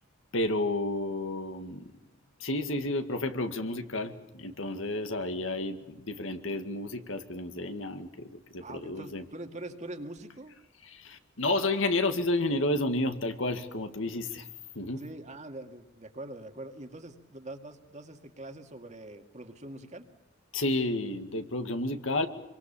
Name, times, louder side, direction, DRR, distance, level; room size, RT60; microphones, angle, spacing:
voice 1, 0.3-1.8 2.4-9.2 10.9-14.5 14.8-15.0 20.5-22.3, left 2 dB, 75° left, 8 dB, 2.2 m, -31 dB
voice 2, 8.6-10.6 15.0-20.1, right 1 dB, 35° right, 6 dB, 2.1 m, -43 dB
27.0 x 24.0 x 7.2 m, 1.1 s
head